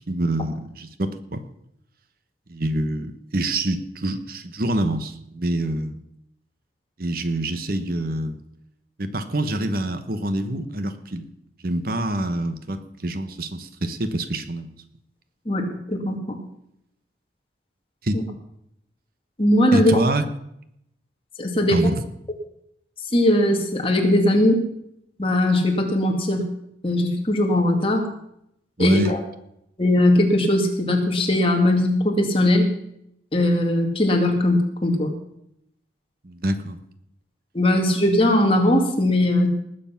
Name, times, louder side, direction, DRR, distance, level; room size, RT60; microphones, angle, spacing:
voice 1, 0.1-1.4 2.5-6.0 7.0-8.4 9.0-11.3 11.6-14.8 18.0-18.2 19.7-20.3 21.7-22.0 28.8-29.1 36.2-36.8, right 1 dB, 50° right, 10 dB, 1.0 m, -26 dB
voice 2, 15.5-16.4 18.1-18.2 19.4-19.9 21.4-21.8 23.1-24.6 25.2-26.5 26.8-28.1 28.8-29.2 29.8-32.7 33.3-35.1 37.5-39.5, left 1 dB, 30° left, 2 dB, 2.1 m, -19 dB
19.5 x 8.0 x 5.8 m, 0.77 s
head